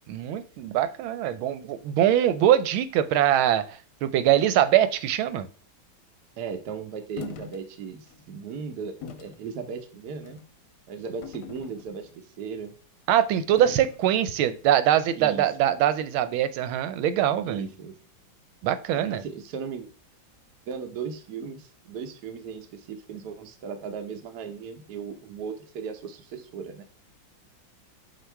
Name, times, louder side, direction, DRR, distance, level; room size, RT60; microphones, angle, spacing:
voice 1, 0.1-3.6 4.0-5.5 13.1-17.7 18.6-19.2, right 11 dB, 90° right, 13 dB, 1.5 m, -23 dB
voice 2, 6.4-10.4 10.9-12.7 15.1-15.5 17.5-18.0 19.0-19.9 20.7-26.9, right 6 dB, 60° right, 6 dB, 1.2 m, -37 dB
sound 1, 7.2-7.6 8.1-8.2 9.0-9.4 10.2-10.5 11.2-12.1 13.6-14.1, left 7 dB, 65° left, 1.0 m, -41 dB
7.9 x 2.8 x 4.5 m, 0.38 s
omnidirectional pair, 2.2 m